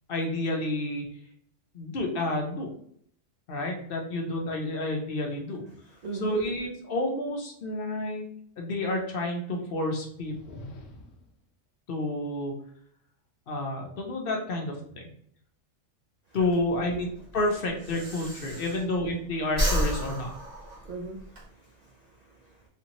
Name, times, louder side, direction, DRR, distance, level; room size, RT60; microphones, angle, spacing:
voice 1, 0.1-1.1 1.7-2.7 3.5-5.6 6.2-8.2 8.6-10.6 11.9-12.5 13.5-15.1 16.3-17.1 17.3-20.3, left 1 dB, 55° left, 1 dB, 0.7 m, -30 dB
voice 2, 6.0-6.4 16.4-16.8 18.5-18.6 20.6-22.7, right 4 dB, 85° right, 1 dB, 0.3 m, -40 dB
sound 1, 10.1-11.4, left 1 dB, 85° left, 1.0 m, -46 dB
Breathing, 16.4-19.2 19.5-21.4, right 1 dB, 50° right, 1.1 m, -31 dB
3.3 x 2.7 x 2.9 m, 0.66 s
omnidirectional pair, 1.3 m